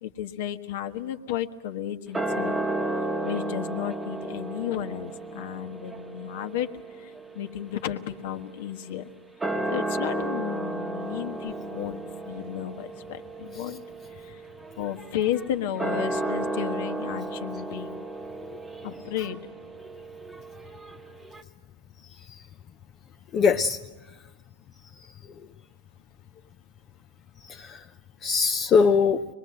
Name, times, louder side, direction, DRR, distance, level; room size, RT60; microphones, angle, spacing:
voice 1, 0.0-2.6 3.2-6.7 7.0-9.1 9.7-12.0 12.3-13.8 14.3-14.4 14.8-18.1 18.8-19.4, left 11 dB, 60° left, 1.4 m, -33 dB
sound 1, 2.1-8.8 9.3-21.4, right 2 dB, 10° right, 1.2 m, -33 dB
voice 2, 22.0-22.4 23.3-23.8 25.0-25.1 27.4-27.9 28.2-29.3, left 5 dB, 30° left, 0.7 m, -23 dB
24.5 x 21.0 x 7.7 m
hypercardioid pair, 120°, 0 cm